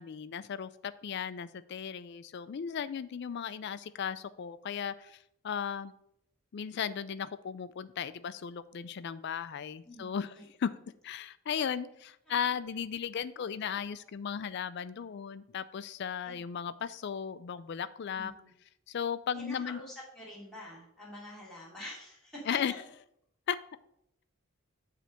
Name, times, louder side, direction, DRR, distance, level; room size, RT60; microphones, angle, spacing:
voice 1, 0.0-5.2 5.4-5.9 6.5-10.3 10.6-10.7 11.0-18.3 18.9-19.8 22.5-22.7 23.5-23.6, left 7 dB, 55° left, 14 dB, 0.4 m, -36 dB
voice 2, 9.8-10.5 12.4-12.5 16.2-16.4 18.1-18.5 19.4-22.4, left 1 dB, 5° left, -7 dB, 2.6 m, -47 dB
7.7 x 3.3 x 6.4 m, 0.75 s
head